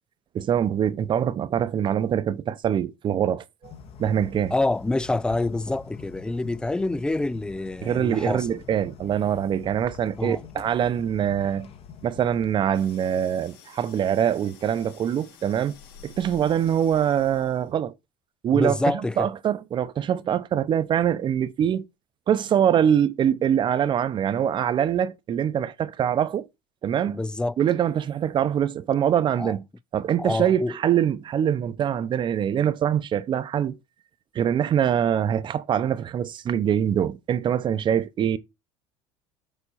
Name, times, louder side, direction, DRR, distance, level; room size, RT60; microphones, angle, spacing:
voice 1, 0.3-3.7 4.0-4.5 7.8-11.7 12.0-15.7 16.0-17.9 18.4-18.8 19.2-21.8 22.3-26.5 26.8-27.2 27.6-29.6 29.9-33.8 34.3-38.4, right 9 dB, 40° right, 0.8 m, -24 dB
sound 1, 3.6-12.6, left 7 dB, 50° left, 1.5 m, -45 dB
voice 2, 4.5-8.6 10.2-10.4 18.5-19.3 27.1-27.6 29.4-29.6 30.2-30.8, left 2 dB, 5° left, 0.3 m, -27 dB
sound 2, 12.7-17.8, left 6 dB, 85° left, 3.6 m, -50 dB
7.1 x 4.3 x 4.2 m
supercardioid pair, 110°, 13 cm